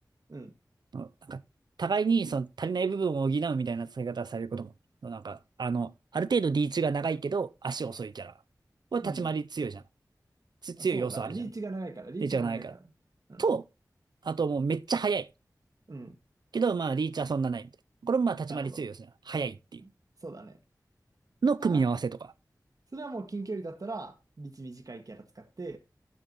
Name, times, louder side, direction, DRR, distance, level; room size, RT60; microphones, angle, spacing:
voice 1, 0.9-1.4 1.8-4.7 5.0-8.3 8.9-9.8 10.6-11.3 12.2-12.7 13.4-13.6 14.2-15.3 16.5-17.7 18.0-19.0 19.3-19.8 21.4-22.3, right 5 dB, 80° right, 0.5 m, -29 dB
voice 2, 9.0-9.3 10.8-12.8 13.3-13.4 15.9-16.2 18.5-18.8 19.8-19.9 20.2-20.6 21.6-21.8 22.9-25.8, right 3 dB, 55° right, 1.7 m, -40 dB
12.5 x 7.3 x 3.0 m
wide cardioid pair, 45°, 7 cm